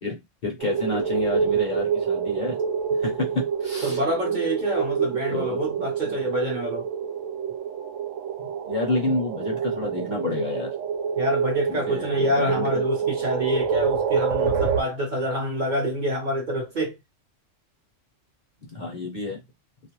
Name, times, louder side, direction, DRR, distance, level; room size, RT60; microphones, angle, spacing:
voice 1, 0.0-2.6 2.9-4.0 5.3-5.6 8.7-10.7 11.7-12.8 18.6-19.4, left 2 dB, 50° left, 0.6 m, -29 dB
sound 1, 0.6-14.8, right 6 dB, 85° right, 1.0 m, -27 dB
voice 2, 3.8-6.9 11.2-16.9, equal, 45° right, 0.7 m, -27 dB
2.4 x 2.0 x 2.9 m
omnidirectional pair, 1.3 m